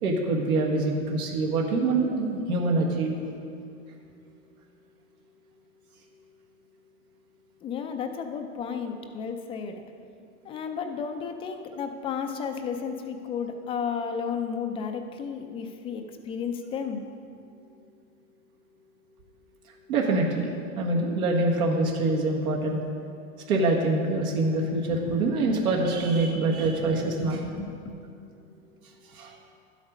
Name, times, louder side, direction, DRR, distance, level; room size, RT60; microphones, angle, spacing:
voice 1, 0.0-3.1 19.9-20.5 20.8-22.8 23.5-27.4 29.1-29.3, right 2 dB, 80° right, -1 dB, 1.7 m, -25 dB
voice 2, 7.6-9.8 10.4-17.0 26.3-26.7 27.4-27.9, left 6 dB, 15° left, 5 dB, 0.3 m, -33 dB
11.5 x 8.1 x 5.1 m, 2.5 s
hypercardioid pair, 125°, 43 cm